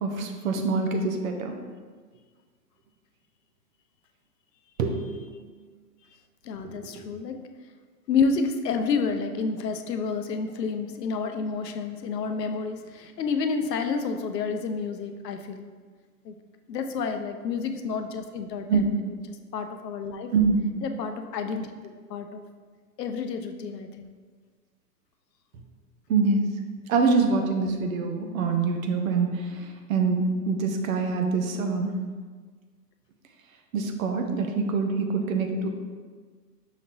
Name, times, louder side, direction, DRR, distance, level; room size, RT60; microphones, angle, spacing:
voice 1, 0.0-1.5 4.8-5.3 6.6-6.7 18.7-18.8 20.3-20.6 26.1-26.5 26.9-31.9 33.7-35.7, right 4 dB, 55° right, 4 dB, 0.7 m, -25 dB
voice 2, 6.4-7.4 8.1-15.7 16.2-16.3 16.7-20.3 20.8-21.7 22.1-22.4 23.0-24.1, left 5 dB, 80° left, 7 dB, 0.6 m, -29 dB
5.8 x 3.0 x 2.6 m, 1.5 s
hypercardioid pair, 110°, 48 cm